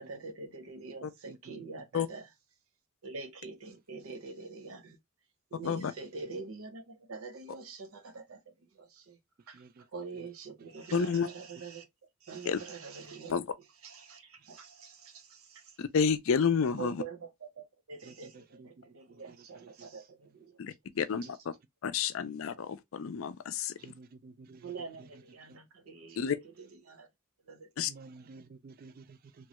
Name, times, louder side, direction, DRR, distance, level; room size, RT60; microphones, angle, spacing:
voice 1, 0.0-2.2 3.0-5.0 5.5-8.4 8.8-9.2 9.5-9.6 9.9-11.9 12.2-13.4 13.8-15.6 16.8-17.2 17.6-20.6 24.6-26.2 26.8-27.1 27.5-27.7, right 4 dB, 85° right, 0.7 m, -45 dB
voice 2, 1.3-1.8 9.5-9.9 10.2-10.3 18.0-19.9 21.0-21.2 23.8-24.7 25.0-25.6 26.1-26.2 27.9-29.5, right 3 dB, 45° right, 0.3 m, -53 dB
voice 3, 10.9-11.3 12.4-12.6 13.3-13.5 15.8-17.0 20.6-21.5 21.8-23.8 26.2-26.4 27.8-27.9, left 6 dB, 75° left, 0.4 m, -30 dB
3.1 x 2.3 x 2.8 m
head